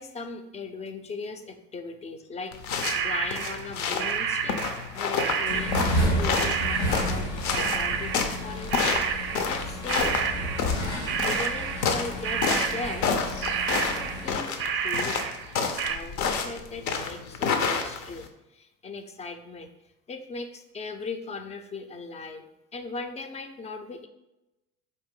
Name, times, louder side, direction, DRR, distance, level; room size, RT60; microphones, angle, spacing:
voice 1, 0.0-4.6 4.9-5.7 6.2-8.7 9.1-10.2 11.2-15.3 15.6-19.7 20.1-24.1, left 4 dB, 20° left, 7 dB, 0.4 m, -38 dB
sound 1, 2.5-18.3, left 5 dB, 60° left, 0.6 m, -29 dB
sound 2, 2.8-9.6 9.9-12.0 12.2-13.2 13.4-16.0, right 7 dB, 40° right, 0.5 m, -30 dB
sound 3, 5.4-14.3, equal, 85° left, 1.4 m, -32 dB
4.0 x 2.5 x 3.7 m, 0.93 s
supercardioid pair, 90°, 32 cm